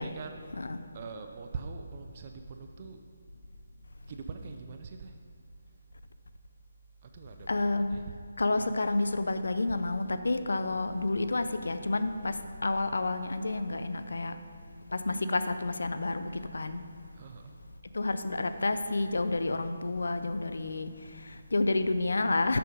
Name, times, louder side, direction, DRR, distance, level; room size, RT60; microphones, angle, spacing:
voice 1, 0.0-0.6 0.9-3.0 4.1-5.1 7.1-8.1 17.2-17.5, right 5 dB, 35° right, 5 dB, 0.4 m, -43 dB
voice 2, 7.5-8.0 8.4-14.4 14.9-16.8 17.9-22.6, left 2 dB, 80° left, 10 dB, 0.5 m, -30 dB
6.8 x 6.0 x 5.1 m, 2.4 s
figure-of-eight pair, 160°, 0 cm